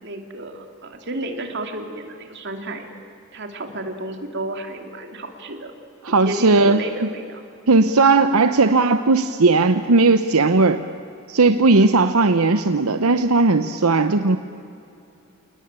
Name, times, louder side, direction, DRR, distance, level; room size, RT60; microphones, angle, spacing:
voice 1, 0.0-2.9 3.3-5.7 6.1-7.4, right 1 dB, 55° right, 5 dB, 2.8 m, -32 dB
voice 2, 6.0-6.8 7.7-10.8 11.3-14.4, right 3 dB, 85° right, 9 dB, 0.9 m, -17 dB
29.0 x 19.5 x 9.0 m, 2.6 s
head